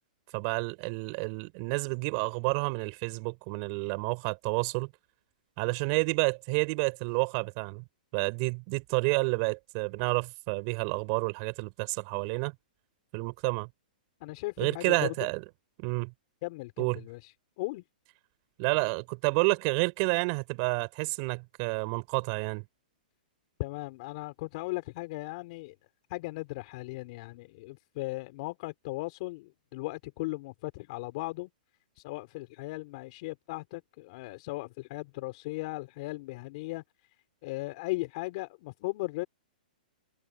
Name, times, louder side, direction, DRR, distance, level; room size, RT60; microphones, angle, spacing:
voice 1, 0.3-4.9 5.6-7.8 8.1-12.5 13.1-13.7 14.6-15.4 15.8-16.1 16.8-17.0 18.6-22.6, right 33 dB, 40° right, 4.6 m, -29 dB
voice 2, 14.2-15.3 16.4-17.3 17.6-17.8 23.6-25.7 26.1-31.5 32.0-36.8 37.4-39.3, left 22 dB, 45° left, 4.6 m, -37 dB
hypercardioid pair, 145°, 5 cm